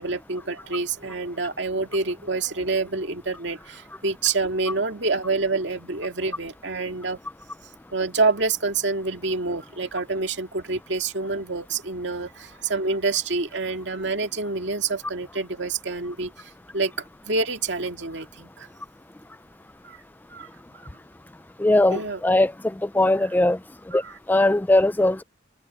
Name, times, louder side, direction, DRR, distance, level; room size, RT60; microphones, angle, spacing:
voice 1, 0.0-7.2 7.9-16.9 17.2-18.7 19.8-20.0 20.3-20.5 20.7-21.0 21.9-22.2 23.9-24.2, right 3 dB, 70° right, 2.2 m, -27 dB
voice 2, 21.6-23.6 23.9-24.0 24.3-25.2, left 1 dB, 10° left, 0.3 m, -20 dB
head